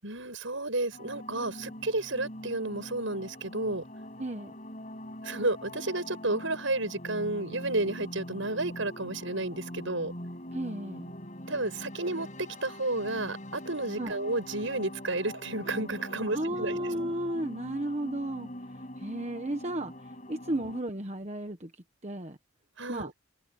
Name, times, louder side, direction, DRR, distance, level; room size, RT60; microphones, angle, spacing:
voice 1, 0.0-3.8 5.2-10.1 11.5-16.8 20.6-20.7 22.8-23.1, right 2 dB, 65° right, 7.8 m, -32 dB
sound 1, 0.9-20.8, left 1 dB, 35° left, 6.4 m, -43 dB
voice 2, 4.2-4.5 10.5-11.1 14.0-14.2 16.3-18.5 19.0-19.9 20.3-21.7 22.0-22.4 22.9-23.1, right 1 dB, 30° right, 1.2 m, -33 dB
head